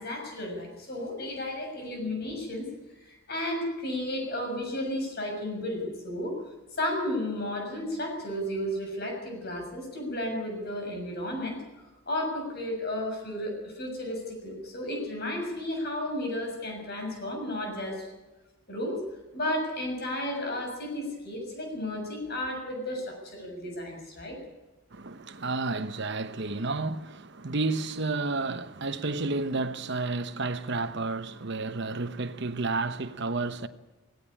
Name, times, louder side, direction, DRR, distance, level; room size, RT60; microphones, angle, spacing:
voice 1, 0.0-2.7 2.9-6.4 6.8-11.6 12.1-18.1 18.7-19.0 19.3-24.4, left 1 dB, 50° left, 6.7 m, -33 dB
voice 2, 24.9-33.7, right 3 dB, 55° right, 1.0 m, -31 dB
17.5 x 16.5 x 10.0 m
head